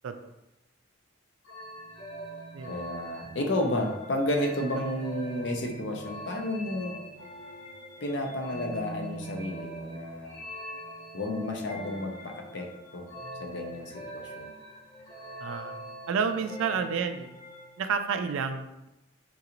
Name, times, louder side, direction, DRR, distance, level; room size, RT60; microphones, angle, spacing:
sound 1, 1.4-17.9, right 1 dB, 80° left, 1.2 m, -43 dB
voice 1, 2.7-7.0 8.0-10.4 11.1-13.1 13.4-14.5, left 1 dB, 55° left, 2 dB, 0.5 m, -32 dB
voice 2, 15.4-15.8 16.1-17.3 17.8-18.9, right 6 dB, 75° right, 8 dB, 0.3 m, -30 dB
3.8 x 2.5 x 2.9 m, 0.90 s
head